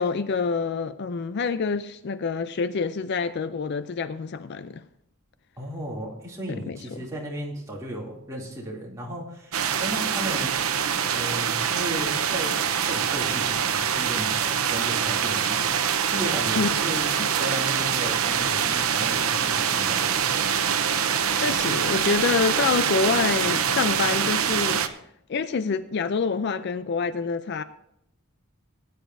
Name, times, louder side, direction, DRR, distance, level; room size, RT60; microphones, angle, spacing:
voice 1, 0.0-4.8 6.7-6.8 16.6-16.7 17.2-17.3 21.3-24.8 25.3-27.6, left 5 dB, 50° left, 0.4 m, -26 dB
voice 2, 5.6-10.5 11.1-12.6 12.8-15.7 16.1-17.1 17.4-20.3, right 1 dB, 15° right, 2.6 m, -35 dB
sound 1, 9.5-24.9, right 8 dB, 75° right, 0.8 m, -24 dB
18.5 x 9.4 x 2.6 m
head